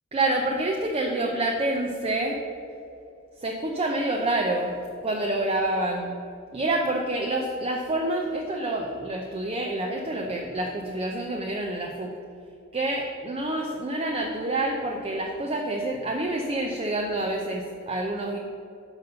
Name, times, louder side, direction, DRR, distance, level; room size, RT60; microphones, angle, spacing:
voice 1, 0.1-2.4 3.4-4.7 5.0-6.2 6.5-12.1 12.7-18.4, right 2 dB, 30° right, 0 dB, 0.5 m, -27 dB
5.9 x 5.3 x 6.7 m, 2.6 s
head